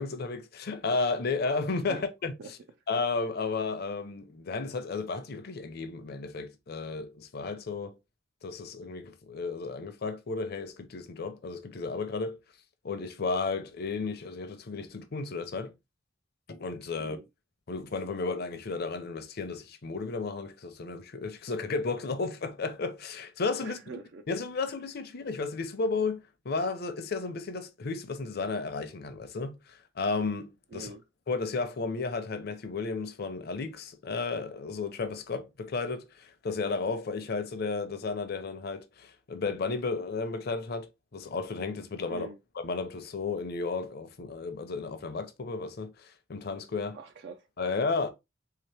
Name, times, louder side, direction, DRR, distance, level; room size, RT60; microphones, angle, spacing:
voice 1, 0.0-2.6 2.9-8.0 8.4-12.4 12.8-15.7 16.5-17.2 17.7-23.8 24.3-30.9 31.3-42.3 42.5-47.0 47.6-48.1, left 4 dB, 55° left, 0.6 m, -33 dB
voice 2, 23.6-24.2 30.7-31.0 42.1-42.4 46.9-47.5, right 4 dB, 60° right, 0.4 m, -43 dB
3.4 x 2.8 x 3.3 m
head